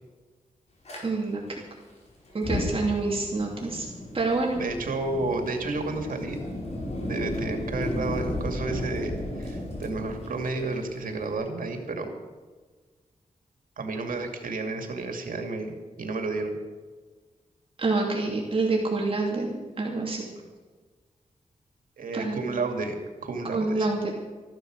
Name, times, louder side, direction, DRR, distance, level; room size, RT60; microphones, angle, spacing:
Fire, 0.9-1.0 2.3-11.3, left 1 dB, 50° left, 4.8 m, -34 dB
voice 1, 1.0-1.4 2.3-3.9 4.1-4.6 17.8-20.2 22.1-22.4 23.5-24.1, right 3 dB, 40° right, -2 dB, 2.8 m, -27 dB
voice 2, 4.5-6.4 7.0-12.1 13.8-16.6 22.0-23.9, right 3 dB, 80° right, 4 dB, 2.6 m, -31 dB
14.5 x 12.0 x 6.5 m, 1.4 s
wide cardioid pair, 130°, 14 cm